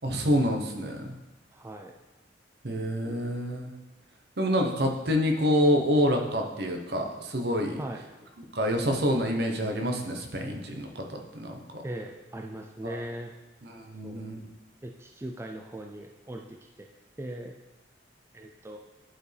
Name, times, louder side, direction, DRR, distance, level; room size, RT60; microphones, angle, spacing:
voice 1, 0.0-1.1 2.6-3.7 4.4-7.8 8.5-11.6 12.8-13.0 13.6-14.4, equal, 60° right, 3 dB, 0.9 m, -27 dB
voice 2, 1.5-1.9 7.8-8.0 11.8-13.3 14.0-14.3 14.8-16.9 17.2-17.5 18.3-18.8, right 1 dB, 15° right, 2 dB, 0.3 m, -39 dB
11.0 x 4.5 x 3.3 m, 1.1 s
head